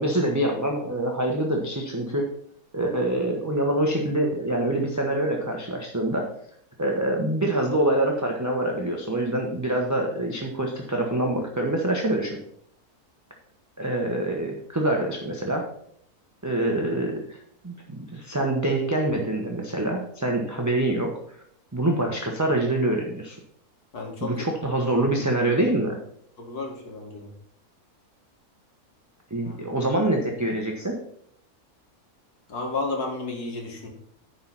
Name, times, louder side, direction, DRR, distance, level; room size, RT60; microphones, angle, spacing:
voice 1, 0.0-2.3 2.7-6.3 6.8-12.4 13.8-15.7 16.4-17.4 17.6-21.2 21.7-23.4 24.2-26.0 29.3-31.0, right 1 dB, 15° right, 0 dB, 0.9 m, -25 dB
voice 2, 23.9-24.5 26.4-27.3 29.4-29.6 32.5-33.9, left 3 dB, 90° left, 1 dB, 2.5 m, -32 dB
10.5 x 4.8 x 5.7 m, 0.67 s
omnidirectional pair, 1.6 m